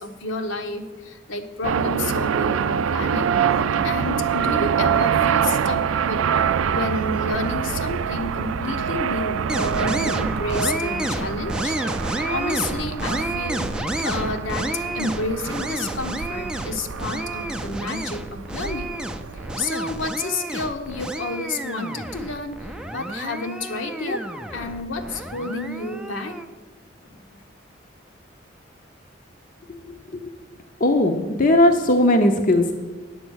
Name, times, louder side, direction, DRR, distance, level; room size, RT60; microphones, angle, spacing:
voice 1, 0.0-3.3 3.8-6.3 6.7-11.8 12.3-13.7 14.0-19.0 19.3-22.7 22.9-24.3 24.5-26.4 27.0-27.4, left 2 dB, 75° left, 5 dB, 1.0 m, -30 dB
sound 1, 1.6-19.7, right 7 dB, 90° right, 0.4 m, -25 dB
sound 2, 9.5-26.4, right 1 dB, 5° right, 0.4 m, -30 dB
voice 2, 30.8-32.7, left 1 dB, 40° left, 5 dB, 0.6 m, -18 dB
9.4 x 7.9 x 6.2 m, 1.3 s
head